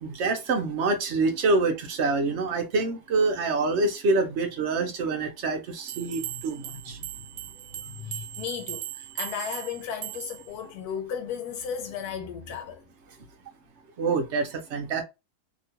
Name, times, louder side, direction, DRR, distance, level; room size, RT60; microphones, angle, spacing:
voice 1, 0.0-7.0 14.0-15.0, right 3 dB, 55° right, 1.0 m, -26 dB
sound 1, 5.9-10.5, right 13 dB, 90° right, 1.2 m, -38 dB
voice 2, 6.2-12.8, left 7 dB, 85° left, 1.2 m, -36 dB
2.9 x 2.3 x 2.7 m
omnidirectional pair, 1.6 m